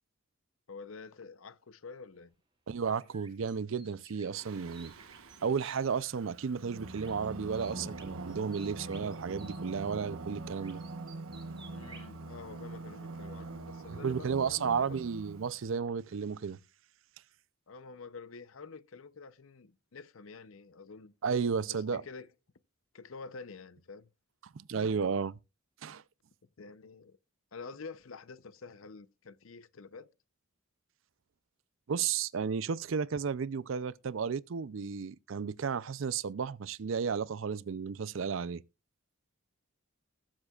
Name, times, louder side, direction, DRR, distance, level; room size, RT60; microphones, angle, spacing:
voice 1, 0.7-2.3 11.7-15.0 17.7-21.1 21.7-22.3 22.9-24.1 26.6-27.2 27.5-30.1, left 4 dB, 75° left, 0.7 m, -48 dB
voice 2, 2.7-4.9 5.4-10.8 13.9-16.6 21.2-22.0 24.5-25.3 25.8-26.0 31.9-38.6, right 6 dB, 70° right, 0.5 m, -33 dB
sound 1, 2.9-5.8 6.9-7.3 7.5-9.6 10.6-12.1, right 5 dB, 25° right, 2.2 m, -55 dB
Singing, 4.3-15.7, right 2 dB, 90° right, 1.1 m, -44 dB
20.5 x 7.4 x 2.4 m
head